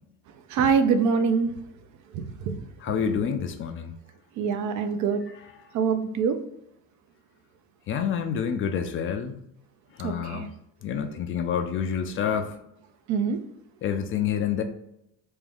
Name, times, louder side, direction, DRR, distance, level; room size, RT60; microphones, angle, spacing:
voice 1, 0.5-1.5 2.1-2.6 2.9-3.0 4.4-5.2 5.7-6.4 10.0-10.5 13.1-13.4, right 6 dB, 55° right, 9 dB, 0.5 m, -24 dB
voice 2, 2.8-3.9 5.3-5.4 7.9-9.4 10.0-10.5 10.8-12.5 13.8-14.6, left 7 dB, 35° left, 7 dB, 0.4 m, -28 dB
3.6 x 2.5 x 3.4 m, 0.81 s
cardioid pair, 135°, 35 cm